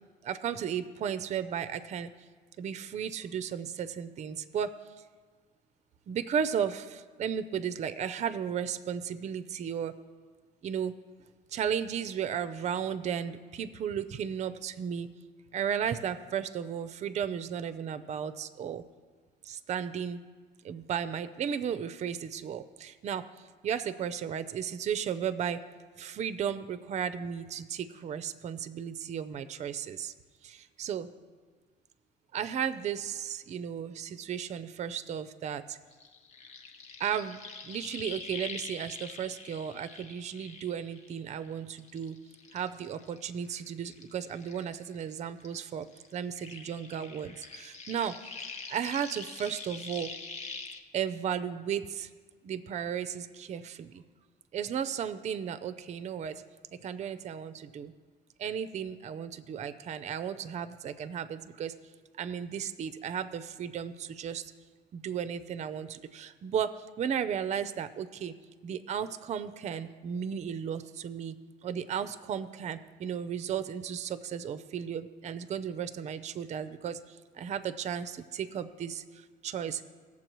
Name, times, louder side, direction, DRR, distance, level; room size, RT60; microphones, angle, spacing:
voice 1, 0.2-2.1 2.6-4.7 6.1-9.9 10.6-10.9 11.5-15.1 15.5-18.8 19.4-20.2 20.6-23.3 23.6-25.6 26.0-30.1 30.4-31.1 32.3-35.8 37.0-37.4 37.6-42.2 42.5-45.9 46.1-48.4 48.7-50.1 50.9-52.1 52.4-54.0 54.5-56.4 56.7-57.9 58.4-61.7 62.2-64.5 64.9-68.3 68.6-71.3 71.6-79.9, right 8 dB, 45° right, 13 dB, 0.5 m, -34 dB
sound 1, 35.9-41.4 41.8-45.1 45.4-50.8, left 4 dB, 40° left, 1.0 m, -44 dB
17.0 x 7.2 x 3.1 m, 1.5 s
cardioid pair, 110°, 17 cm